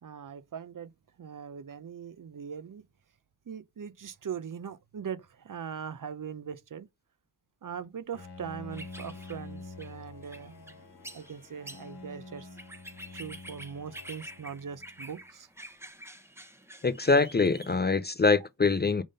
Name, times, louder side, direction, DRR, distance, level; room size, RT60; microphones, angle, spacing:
voice 1, 0.0-0.9 1.2-2.8 3.5-6.9 7.6-10.8 11.1-12.5 13.1-15.5, right 7 dB, 55° right, 0.6 m, -41 dB
Bowed string instrument, 8.1-15.2, left 3 dB, 85° left, 1.1 m, -47 dB
sound 1, 8.7-17.8, right 1 dB, 5° right, 0.9 m, -48 dB
voice 2, 16.8-19.0, left 4 dB, 25° left, 0.4 m, -24 dB
5.2 x 3.7 x 5.3 m
wide cardioid pair, 60°, 39 cm